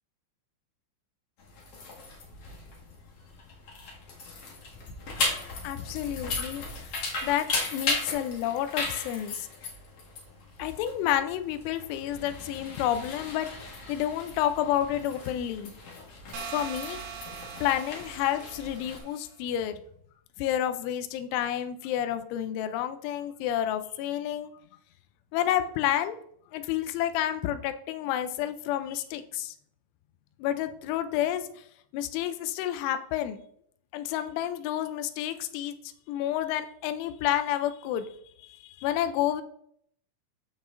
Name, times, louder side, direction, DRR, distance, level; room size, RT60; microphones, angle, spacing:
sound 1, 1.4-19.0, left 3 dB, 60° left, 1.5 m, -37 dB
voice 1, 5.6-6.9 7.2-9.5 10.6-15.7 16.5-17.0 17.6-19.8 20.4-24.5 25.3-26.2 26.5-29.5 30.4-31.5 31.9-33.4 33.9-35.8 36.1-38.1 38.4-39.4, left 11 dB, 90° left, 9 dB, 3.1 m, -30 dB
sound 2, 16.3-19.2, right 7 dB, 80° right, 3.7 m, -41 dB
14.5 x 4.9 x 2.6 m, 0.65 s
omnidirectional pair, 5.3 m